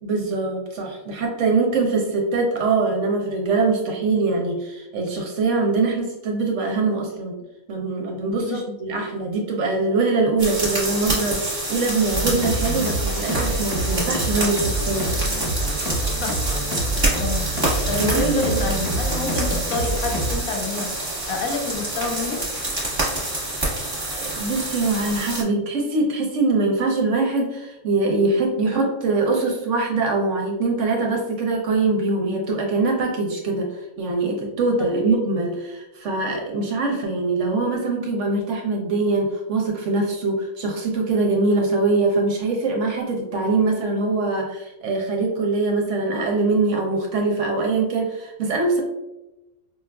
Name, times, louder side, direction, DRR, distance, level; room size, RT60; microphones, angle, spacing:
voice 1, 0.0-7.4 7.7-15.1 18.0-18.6 24.2-48.8, right 3 dB, 65° right, 1 dB, 0.9 m, -23 dB
voice 2, 8.3-8.6 16.2-16.3 17.2-17.5 17.9-20.9 21.3-22.4, left 3 dB, 75° left, 3 dB, 1.0 m, -27 dB
sound 1, 10.4-25.4, right 1 dB, 20° right, 1.0 m, -27 dB
sound 2, 12.1-20.3, right 2 dB, 15° left, 0.9 m, -26 dB
4.7 x 2.4 x 2.2 m, 0.97 s
omnidirectional pair, 1.5 m